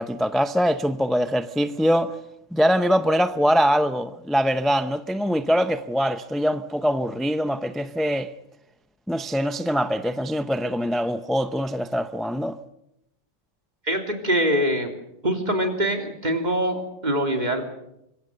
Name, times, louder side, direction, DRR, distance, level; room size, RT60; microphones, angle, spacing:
voice 1, 0.0-2.2 2.5-8.3 9.1-12.6, equal, ahead, 0.6 m, -23 dB
voice 2, 13.9-14.9 15.2-17.7, equal, 35° right, 3.4 m, -24 dB
25.0 x 23.5 x 6.7 m
omnidirectional pair, 1.3 m